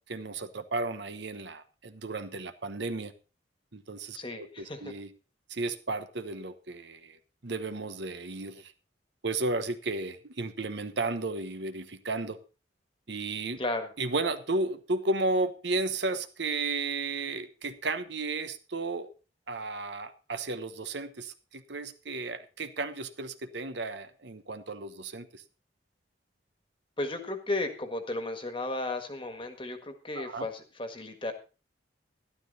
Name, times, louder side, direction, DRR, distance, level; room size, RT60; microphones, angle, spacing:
voice 1, 0.1-3.1 3.7-5.1 5.5-7.2 7.4-8.7 9.2-12.4 13.1-13.6 14.0-19.1 19.5-25.4 30.1-30.5, right 3 dB, 65° right, 10 dB, 1.0 m, -33 dB
voice 2, 4.1-4.9 13.6-13.9 27.0-31.3, left 2 dB, 25° left, 7 dB, 1.6 m, -34 dB
12.5 x 12.0 x 4.0 m, 0.33 s
head